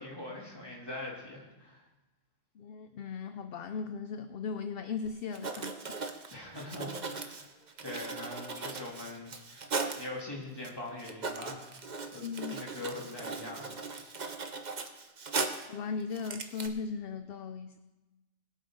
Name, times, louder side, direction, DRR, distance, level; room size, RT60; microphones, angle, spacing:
voice 1, 0.0-1.8 6.3-7.5 7.8-9.7 10.0-11.7 12.1-12.2 12.5-13.7, left 2 dB, 20° left, -4 dB, 3.2 m, -42 dB
voice 2, 2.6-5.8 12.2-12.6 15.7-17.8, left 5 dB, 60° left, 9 dB, 0.8 m, -37 dB
Writing, 5.0-5.1 5.3-10.1 10.6-10.7 11.0-15.7 16.1-16.7, right 4 dB, 40° right, 1.0 m, -38 dB
21.5 x 8.3 x 4.0 m, 1.1 s
omnidirectional pair, 1.2 m